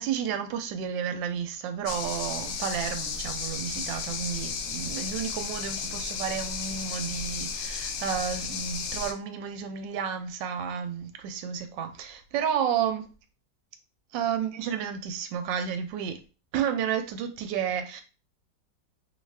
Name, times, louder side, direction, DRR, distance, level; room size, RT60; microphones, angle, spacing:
voice 1, 0.0-13.1 14.1-16.2 16.5-18.0, right 8 dB, 85° right, 1.3 m, -31 dB
sound 1, 1.9-9.1, left 5 dB, 70° left, 1.0 m, -34 dB
3.1 x 2.4 x 3.2 m
omnidirectional pair, 2.0 m